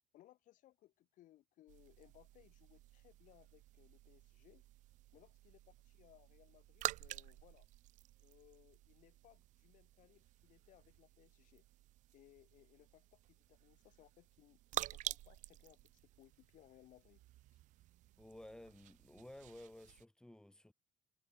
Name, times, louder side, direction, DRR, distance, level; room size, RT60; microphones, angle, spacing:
voice 1, 0.1-4.6 5.1-7.7 8.2-11.6 12.1-17.2, left 14 dB, 50° left, 7.8 m, -66 dB
sound 1, 1.7-20.0, right 16 dB, 50° right, 0.6 m, -50 dB
voice 2, 18.2-20.7, left 1 dB, 5° left, 4.2 m, -55 dB
cardioid pair, 165°, 16 cm